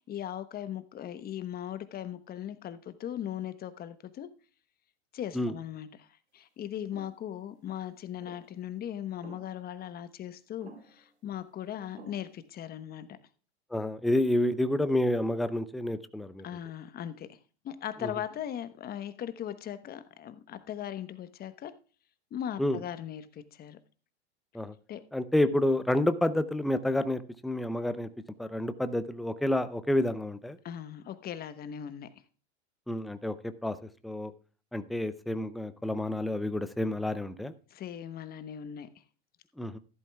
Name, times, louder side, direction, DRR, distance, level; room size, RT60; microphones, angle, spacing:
voice 1, 0.1-4.3 5.1-6.1 6.3-13.1 16.4-17.4 17.6-21.7 22.3-23.8 24.9-25.0 30.6-32.1 37.7-38.9, left 10 dB, 30° left, 1.0 m, -39 dB
sound 1, 6.9-7.2 8.2-8.6 9.2-9.7 10.6-11.1 12.0-12.5, right 3 dB, 80° right, 3.4 m, -52 dB
voice 2, 13.7-16.4 18.0-18.1 22.6-22.8 24.5-24.7 25.1-28.1 28.4-30.6 32.9-34.3 34.7-37.5 39.6-39.8, left 1 dB, ahead, 0.5 m, -29 dB
14.5 x 12.0 x 2.3 m
hypercardioid pair, 105°, 33 cm